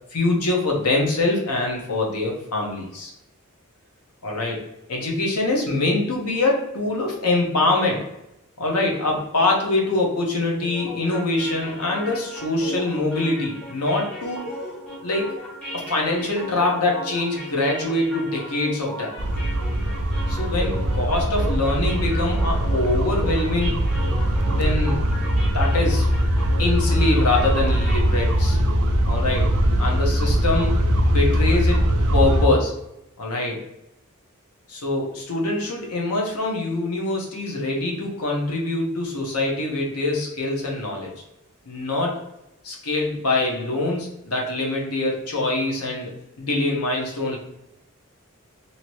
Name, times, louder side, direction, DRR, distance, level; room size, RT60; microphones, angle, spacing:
voice 1, 0.1-3.1 4.2-4.6 4.9-8.0 8.6-14.6 15.0-15.3 15.7-19.1 20.3-23.8 24.5-25.0 25.5-26.1 26.6-28.6 29.0-29.5 29.8-30.7 31.0-31.8 32.1-32.7 33.2-33.6 34.7-41.1 41.6-42.1 42.6-47.4, left 2 dB, 80° left, -1 dB, 0.9 m, -24 dB
sound 1, 10.6-28.5, equal, 5° left, 1.1 m, -37 dB
sound 2, 19.2-32.5, equal, 80° right, 0.5 m, -21 dB
2.8 x 2.8 x 3.0 m, 0.86 s
head